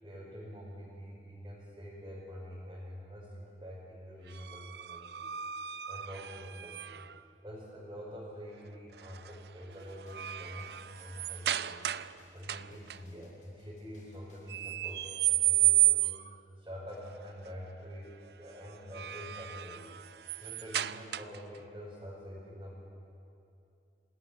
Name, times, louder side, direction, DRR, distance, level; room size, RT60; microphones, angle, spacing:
voice 1, 0.0-5.3 5.9-7.1 7.4-11.8 12.3-19.9 20.4-22.9, equal, 20° right, -7 dB, 5.4 m, -46 dB
sound 1, 4.3-7.2 9.0-9.3 9.7-12.2 12.4-13.0 14.5-16.4 18.7-21.6, right 15 dB, 65° right, 0.5 m, -32 dB
sound 2, 9.7-15.3, left 1 dB, 45° left, 6.6 m, -64 dB
28.0 x 18.0 x 9.8 m, 2.7 s
head